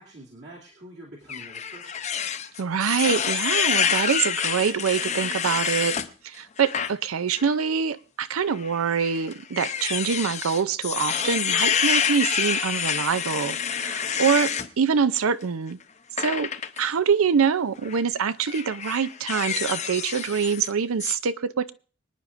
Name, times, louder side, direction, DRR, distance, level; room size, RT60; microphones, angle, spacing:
voice 1, 0.0-2.0, right 1 dB, 55° right, -4 dB, 2.5 m, -46 dB
sound 1, 1.3-6.1 6.6-6.9 7.4-7.5 8.5-14.7 16.2-16.8 17.8-18.0 18.5-20.7 21.0-21.1, left 7 dB, 35° left, 0.6 m, -27 dB
voice 2, 2.6-6.0 6.2-14.5 14.8-15.8 16.2-16.5 16.8-21.7, right 6 dB, 80° right, 15 dB, 0.5 m, -25 dB
25.5 x 9.7 x 2.6 m, 0.38 s
head